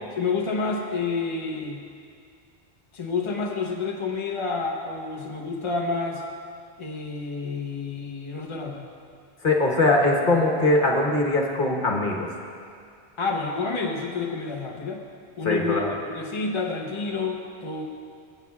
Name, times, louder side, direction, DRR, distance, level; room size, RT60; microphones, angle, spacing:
voice 1, 0.1-1.9 2.9-6.2 6.8-8.9 13.2-15.0 15.4-17.9, left 4 dB, 30° left, 0 dB, 0.7 m, -29 dB
voice 2, 9.4-12.3 15.4-15.9, left 2 dB, 50° left, -1 dB, 1.4 m, -21 dB
23.0 x 9.1 x 2.4 m, 2.3 s
omnidirectional pair, 1.1 m